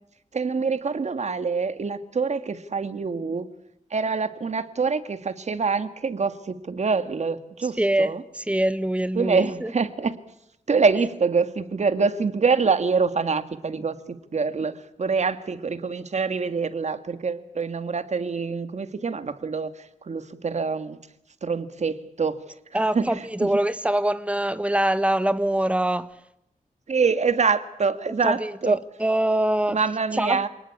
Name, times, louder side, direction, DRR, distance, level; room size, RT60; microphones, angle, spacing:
voice 1, 0.3-3.5 3.9-8.2 9.2-10.1 10.7-14.0 14.3-19.7 20.0-21.0 21.4-22.4 22.7-23.5 26.9-28.8 29.7-30.5, right 5 dB, 55° right, 1.9 m, -25 dB
voice 2, 7.8-9.7 22.7-26.1 28.2-29.8 30.1-30.5, right 1 dB, 10° right, 1.3 m, -24 dB
28.5 x 19.5 x 8.7 m
wide cardioid pair, 105°, 14 cm